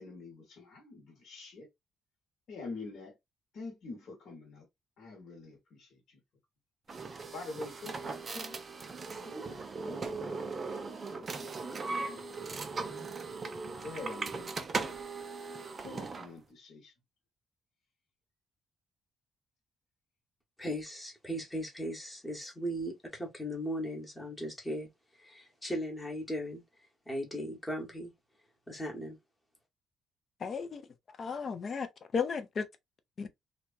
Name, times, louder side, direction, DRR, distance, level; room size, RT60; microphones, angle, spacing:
voice 1, 0.0-1.7 2.5-3.2 3.5-4.7 5.0-6.2 6.9-7.1 7.3-8.6 9.2-10.2 10.7-14.6 15.8-16.9, left 3 dB, 50° left, 1.0 m, -47 dB
sound 1, 6.9-16.3, right 4 dB, 30° right, 0.4 m, -39 dB
voice 2, 20.6-26.6 27.1-28.1 28.7-29.2, equal, 10° left, 1.0 m, -38 dB
voice 3, 30.4-30.8 31.2-31.9 32.1-32.6 33.2-33.3, left 5 dB, 35° left, 0.4 m, -33 dB
2.9 x 2.2 x 2.4 m
cardioid pair, 160°, 0 cm